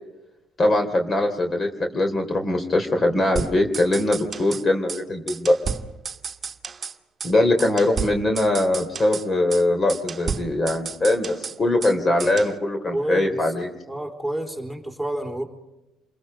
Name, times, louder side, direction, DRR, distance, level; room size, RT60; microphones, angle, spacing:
voice 1, 0.6-5.6 7.2-13.7, left 1 dB, 35° left, 5 dB, 3.3 m, -22 dB
sound 1, 3.4-4.6 4.9-5.0 5.3-7.0 7.2-7.3 7.6-9.3 9.5-9.6 9.9-11.9 12.2-12.5, right 5 dB, 35° right, 1.3 m, -32 dB
voice 2, 12.9-13.5 13.9-15.4, right 1 dB, 5° left, 5 dB, 4.0 m, -29 dB
28.5 x 22.0 x 5.2 m, 0.96 s
hypercardioid pair, 65°, 0 cm